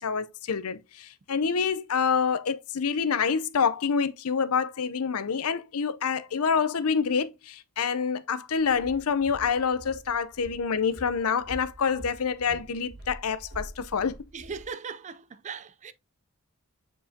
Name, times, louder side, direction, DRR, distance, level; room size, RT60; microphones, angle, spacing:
voice 1, 0.0-14.2, left 6 dB, 85° left, 0.6 m, -27 dB
Walk footsteps, 8.6-14.7, equal, 50° right, 4.1 m, -46 dB
voice 2, 14.3-15.9, right 5 dB, 30° right, 0.4 m, -39 dB
7.3 x 4.7 x 2.7 m
head